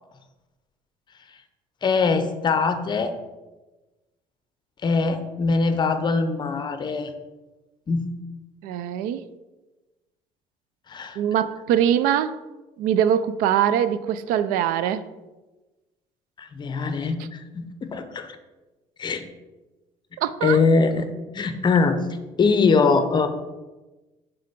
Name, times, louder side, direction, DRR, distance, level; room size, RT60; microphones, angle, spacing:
voice 1, 1.8-3.1 4.8-7.1 7.9-8.0 10.9-11.2 16.4-18.3 19.0-19.2 20.4-21.1 21.3-22.1 22.4-23.3, left 4 dB, 30° left, 9 dB, 0.7 m, -22 dB
voice 2, 8.6-9.3 11.2-12.4 12.8-15.1 17.2-17.3 20.2-20.6, right 9 dB, 85° right, 14 dB, 0.4 m, -22 dB
6.6 x 3.9 x 5.2 m, 1.1 s
cardioid pair, 120°, 14 cm